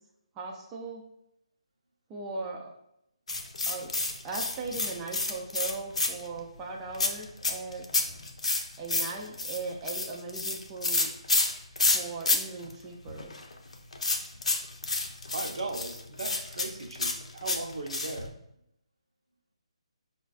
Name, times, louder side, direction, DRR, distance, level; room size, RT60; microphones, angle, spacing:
voice 1, 0.4-1.0 2.1-2.7 3.7-3.9 4.2-7.9 8.8-11.1 11.9-13.3, right 3 dB, 15° right, -2 dB, 0.4 m, -38 dB
sound 1, 3.3-6.4 6.9-12.4 12.6-12.7 13.1-18.3, left 3 dB, 75° left, 0.6 m, -29 dB
voice 2, 15.3-18.3, right 3 dB, 65° right, 2 dB, 0.8 m, -37 dB
5.1 x 2.3 x 2.4 m, 0.78 s
figure-of-eight pair, 155°, 3 cm